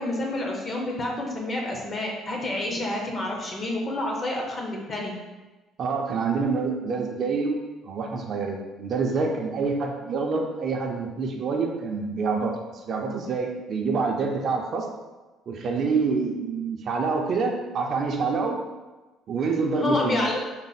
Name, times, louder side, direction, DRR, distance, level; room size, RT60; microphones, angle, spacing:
voice 1, 0.0-5.2 19.7-20.4, left 2 dB, 30° left, 0 dB, 0.7 m, -28 dB
voice 2, 5.8-7.6 7.8-12.5 12.9-14.9 15.5-18.6 19.3-20.2, right 4 dB, 45° right, 1 dB, 0.5 m, -26 dB
3.9 x 2.0 x 4.0 m, 1.1 s
cardioid pair, 145°, 0 cm